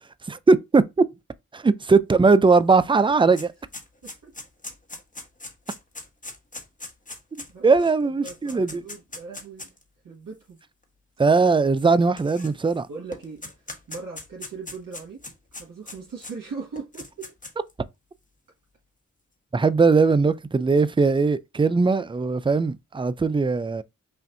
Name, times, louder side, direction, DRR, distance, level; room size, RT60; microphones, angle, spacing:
voice 1, 0.3-1.0 1.5-3.5 7.6-8.8 11.2-12.9 19.5-23.8, right 4 dB, 15° right, 0.4 m, -19 dB
sound 1, 2.5-2.6 2.9-9.8 10.6-10.7 11.8-12.8 13.1-16.3 16.8-17.7, left 2 dB, 25° left, 1.2 m, -40 dB
voice 2, 7.5-7.9 8.2-9.7 10.0-10.6 12.9-15.2 15.6-17.3, right 4 dB, 80° right, 1.8 m, -39 dB
5.7 x 2.6 x 2.6 m
cardioid pair, 55°, 33 cm